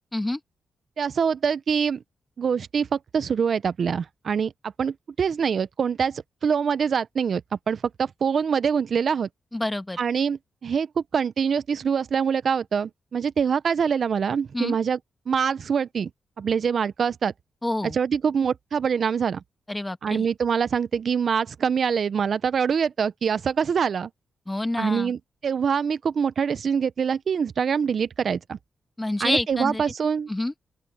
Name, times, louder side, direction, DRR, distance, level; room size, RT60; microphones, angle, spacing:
voice 1, 1.0-2.0 2.4-7.4 7.7-9.3 10.0-15.0 15.3-16.1 16.4-17.3 17.9-19.4 20.0-24.1 24.8-28.6 29.2-30.3, right 6 dB, 65° right, 0.8 m, -24 dB
voice 2, 9.5-10.0 14.5-14.8 17.6-18.0 19.7-20.3 24.5-25.1 29.0-29.8 30.3-30.5, left 1 dB, 20° left, 1.6 m, -27 dB
open air
supercardioid pair, 50°, 0 cm